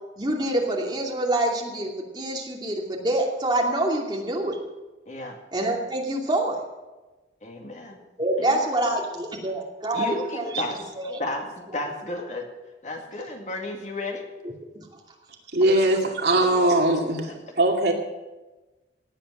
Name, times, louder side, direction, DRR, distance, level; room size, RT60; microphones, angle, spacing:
voice 1, 0.2-4.6 5.5-6.6 8.2-10.5 11.0-11.2 14.7-14.9 16.3-16.4, right 1 dB, 25° right, -1 dB, 2.7 m, -26 dB
voice 2, 5.1-5.4 7.4-8.0 8.4-8.9 9.9-10.8 11.2-12.5 12.8-14.3, left 2 dB, 40° left, 2 dB, 2.2 m, -33 dB
voice 3, 15.5-17.3 17.6-17.9, right 1 dB, 60° right, 1 dB, 2.4 m, -20 dB
17.5 x 8.9 x 6.7 m, 1.1 s
head